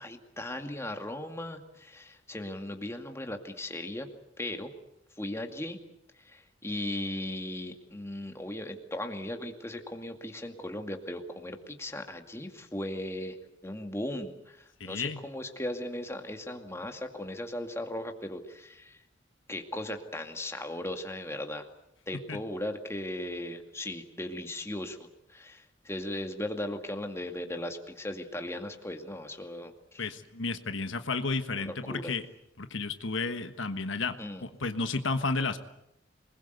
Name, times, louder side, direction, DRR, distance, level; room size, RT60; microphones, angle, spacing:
voice 1, 0.0-4.1 4.4-4.7 5.2-5.8 6.2-13.4 13.6-19.0 19.5-21.7 22.1-25.0 25.3-30.1 31.5-32.1 34.2-34.4, left 1 dB, 15° left, 5 dB, 2.2 m, -37 dB
voice 2, 14.8-15.2 22.3-22.4 30.0-32.2 32.6-35.6, left 3 dB, 75° left, 9 dB, 1.4 m, -32 dB
27.0 x 21.0 x 8.1 m, 0.81 s
head